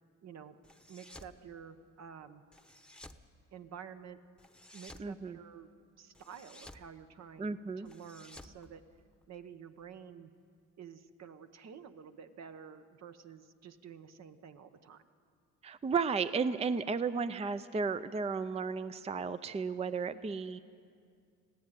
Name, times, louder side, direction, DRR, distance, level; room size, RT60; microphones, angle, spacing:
voice 1, 0.2-0.6 0.9-2.4 3.5-4.2 4.7-5.7 6.0-8.8 9.3-10.3 10.8-15.0, right 7 dB, 60° right, 9 dB, 1.1 m, -50 dB
sound 1, 0.6-1.4 2.5-3.2 4.4-5.1 6.1-6.9 7.8-9.4, left 1 dB, 5° left, 0.9 m, -54 dB
voice 2, 5.0-5.4 7.4-7.9 15.6-20.6, right 5 dB, 20° right, 13 dB, 0.5 m, -34 dB
21.0 x 15.0 x 9.1 m, 2.3 s
cardioid pair, 90°, 30 cm